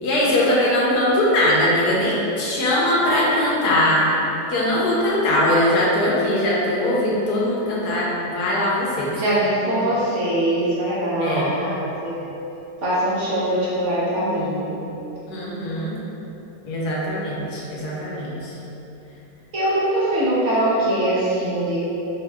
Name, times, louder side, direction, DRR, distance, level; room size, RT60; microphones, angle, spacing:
voice 1, 0.0-4.0 4.5-9.2 9.7-9.8 11.2-11.5 15.3-15.9 16.6-18.6, left 1 dB, 70° left, -5 dB, 1.1 m, -21 dB
voice 2, 9.1-12.3 12.8-14.8 19.5-21.8, right 1 dB, 60° right, -9 dB, 0.8 m, -22 dB
5.3 x 2.7 x 2.2 m, 3.0 s
omnidirectional pair, 1.9 m